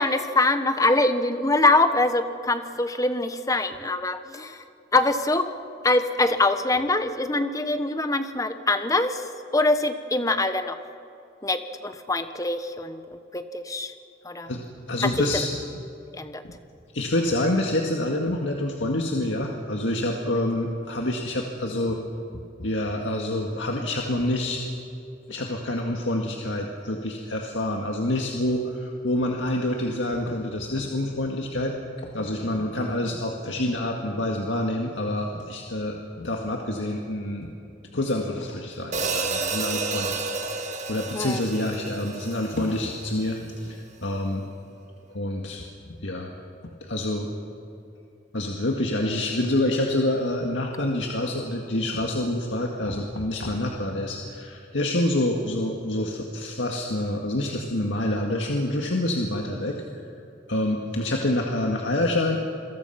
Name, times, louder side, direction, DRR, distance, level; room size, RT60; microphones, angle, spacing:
voice 1, 0.0-4.6 4.9-5.5 5.8-9.2 9.5-10.8 11.4-13.9 14.2-14.5 16.1-16.4 41.1-41.4, left 2 dB, 20° left, 9 dB, 1.2 m, -24 dB
voice 2, 14.9-15.5 16.4-16.5 16.9-22.0 22.6-24.6 25.3-31.8 32.0-37.5 37.9-40.2 40.5-40.6 40.9-44.5 45.1-45.6 46.0-46.3 46.8-47.3 48.3-59.8 60.5-62.4, left 1 dB, 90° left, 1 dB, 1.9 m, -27 dB
Hi-hat, 38.9-43.2, right 4 dB, 40° right, 2.0 m, -30 dB
28.0 x 22.5 x 5.9 m, 2.6 s
head